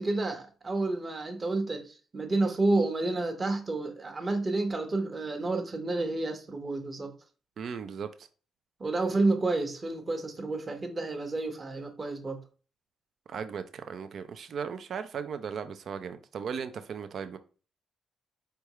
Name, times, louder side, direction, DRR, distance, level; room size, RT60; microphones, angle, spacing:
voice 1, 0.0-7.2 8.8-12.4, right 2 dB, 30° right, 1.0 m, -30 dB
voice 2, 7.6-8.3 13.3-17.4, right 6 dB, 60° right, 0.5 m, -37 dB
4.6 x 3.4 x 3.0 m
cardioid pair, 90°, 0 cm